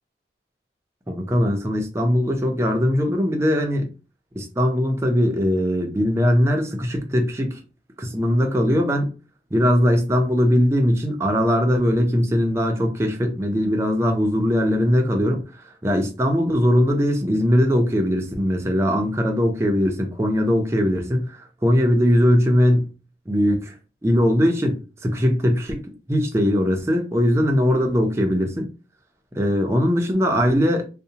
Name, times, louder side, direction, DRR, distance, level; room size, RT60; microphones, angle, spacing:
voice 1, 1.1-3.9 4.4-7.6 8.0-9.1 9.5-15.4 15.8-22.9 23.3-23.7 24.0-28.7 29.3-30.9, equal, 15° right, 0.4 m, -20 dB
2.7 x 2.0 x 2.7 m
head